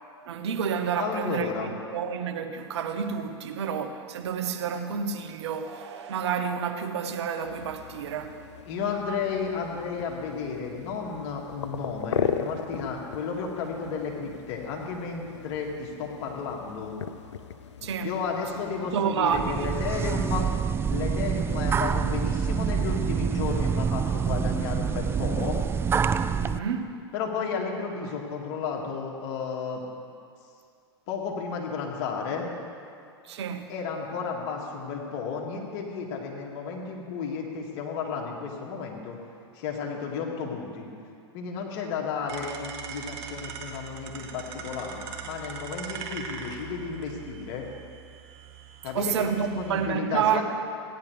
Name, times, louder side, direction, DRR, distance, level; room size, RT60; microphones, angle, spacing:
voice 1, 0.3-8.4 17.8-18.1 18.9-19.7 26.4-27.0 33.2-33.7 48.9-50.4, right 7 dB, 75° right, 0.9 m, -29 dB
voice 2, 0.9-1.7 8.7-16.9 18.0-20.5 20.9-25.6 27.1-29.8 31.1-32.5 33.7-39.2 39.5-40.9 41.3-47.7 48.8-50.4, left 5 dB, 55° left, 2.2 m, -33 dB
sound 1, 7.4-20.3, left 8 dB, 90° left, 0.5 m, -38 dB
sound 2, 19.3-26.6, right 7 dB, 15° right, 0.3 m, -26 dB
sound 3, 42.3-49.9, right 6 dB, 60° right, 1.4 m, -41 dB
16.5 x 10.5 x 3.4 m
hypercardioid pair, 105°, 14 cm